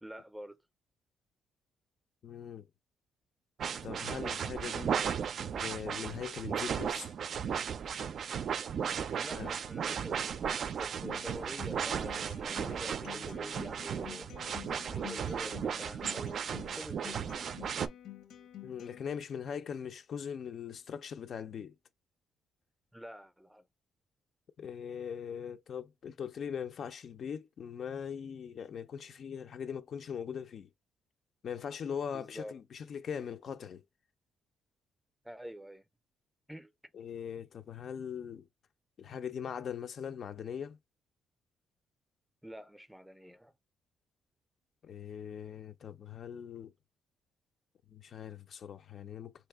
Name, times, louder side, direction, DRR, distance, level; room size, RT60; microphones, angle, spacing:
voice 1, 0.0-0.6 9.1-10.4 10.8-14.3 14.7-17.4 22.9-23.6 32.1-32.5 35.2-35.9 36.5-36.7 42.4-43.5, equal, 5° right, 0.5 m, -47 dB
voice 2, 2.2-2.6 3.8-4.9 5.5-7.1 9.3-9.5 18.6-21.7 24.6-30.7 31.4-33.8 36.9-38.5 39.0-40.8 44.8-46.7 47.9-49.3, left 7 dB, 55° left, 0.4 m, -41 dB
sound 1, 3.6-17.9, right 7 dB, 60° right, 0.3 m, -35 dB
Acoustic guitar, 11.0-19.0, left 9 dB, 85° left, 0.9 m, -50 dB
3.0 x 2.7 x 3.4 m
cardioid pair, 90°, 0 cm